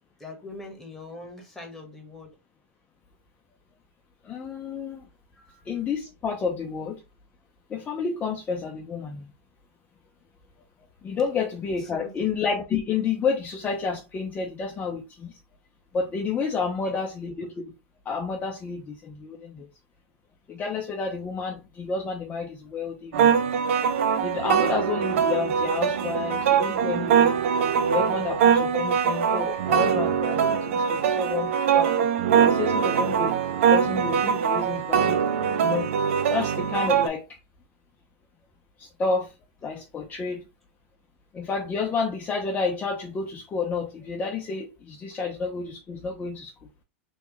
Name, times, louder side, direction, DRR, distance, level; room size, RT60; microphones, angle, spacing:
voice 1, 0.2-2.3 5.3-5.6 11.8-12.1 16.6-16.9, left 2 dB, 5° left, 1.4 m, -43 dB
voice 2, 4.2-5.1 5.7-7.0 7.7-9.3 11.0-15.4 15.9-17.7 18.1-19.7 20.5-23.4 24.2-27.4 27.9-32.1 32.4-33.3 33.6-35.2 35.6-35.9 36.3-37.4 38.8-39.3 39.6-40.5 41.3-46.7, left 5 dB, 25° left, 0.6 m, -30 dB
sound 1, 23.1-37.1, right 7 dB, 75° right, 0.7 m, -22 dB
3.3 x 3.1 x 3.0 m
hypercardioid pair, 125°, 7 cm